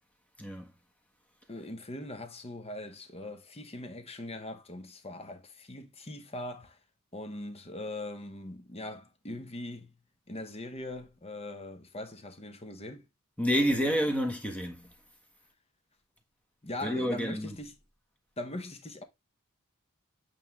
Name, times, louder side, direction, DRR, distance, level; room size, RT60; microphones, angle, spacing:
voice 1, 0.4-0.7 13.4-14.9 16.8-17.6, equal, 5° left, 1.4 m, -29 dB
voice 2, 1.5-6.8 7.1-9.9 10.3-13.1 16.6-17.8 18.4-19.0, left 1 dB, 30° left, 1.0 m, -41 dB
8.5 x 3.4 x 3.6 m
head